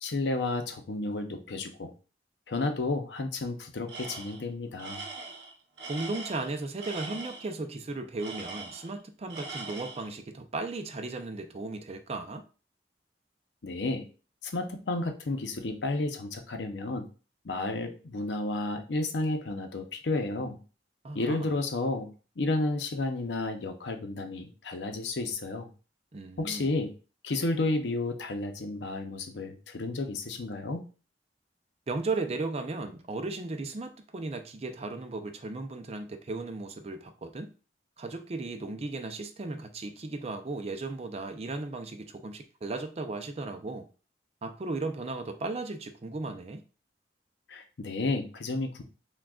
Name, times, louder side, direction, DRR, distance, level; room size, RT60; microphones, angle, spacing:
voice 1, 0.0-1.9 2.5-5.0 13.6-14.0 14.4-17.0 17.4-20.6 21.1-22.1 22.4-25.7 26.4-26.9 27.2-30.8 47.5-48.8, left 2 dB, 85° left, 0.6 m, -31 dB
Tools, 3.9-4.5 4.8-7.5 8.2-9.0 9.3-10.1, right 3 dB, 80° right, 0.7 m, -41 dB
voice 2, 5.9-12.4 21.0-21.5 26.1-26.7 31.9-37.5 38.0-43.9 44.4-46.6, right 3 dB, 35° right, 0.5 m, -36 dB
6.0 x 2.3 x 2.3 m
head